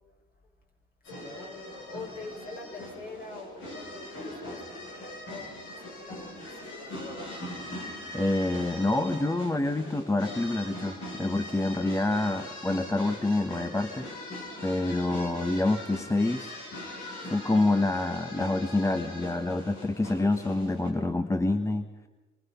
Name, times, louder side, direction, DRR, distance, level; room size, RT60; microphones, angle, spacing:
voice 1, 1.0-7.1, left 3 dB, 50° left, 1 dB, 6.2 m, -44 dB
sound 1, 1.1-20.9, left 1 dB, 85° left, 7.9 m, -41 dB
voice 2, 8.1-14.1 14.6-16.6 17.2-21.9, left 2 dB, 15° left, 8 dB, 1.3 m, -27 dB
26.0 x 24.0 x 5.8 m, 1.1 s
cardioid pair, 90°, 20 cm